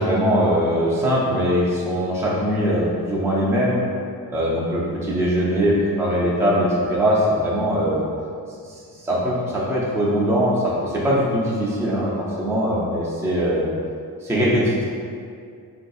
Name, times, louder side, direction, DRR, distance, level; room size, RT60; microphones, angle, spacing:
voice 1, 0.0-3.8 4.3-8.0 8.6-8.7 9.0-13.7 14.2-14.8, equal, 5° right, -6 dB, 0.4 m, -21 dB
3.8 x 2.6 x 2.3 m, 2.3 s
wide cardioid pair, 155°, 38 cm